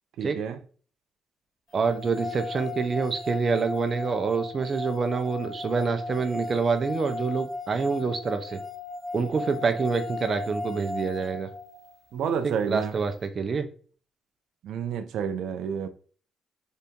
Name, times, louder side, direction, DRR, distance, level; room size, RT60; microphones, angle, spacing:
voice 1, 0.2-0.6 12.1-13.0 14.6-15.9, right 7 dB, 75° right, 0.5 m, -29 dB
voice 2, 1.7-8.6 9.1-11.5 12.7-13.7, right 5 dB, 45° right, 0.8 m, -27 dB
sound 1, 1.8-12.0, left 3 dB, 35° left, 2.0 m, -36 dB
4.0 x 2.7 x 3.6 m
cardioid pair, 90°, 0 cm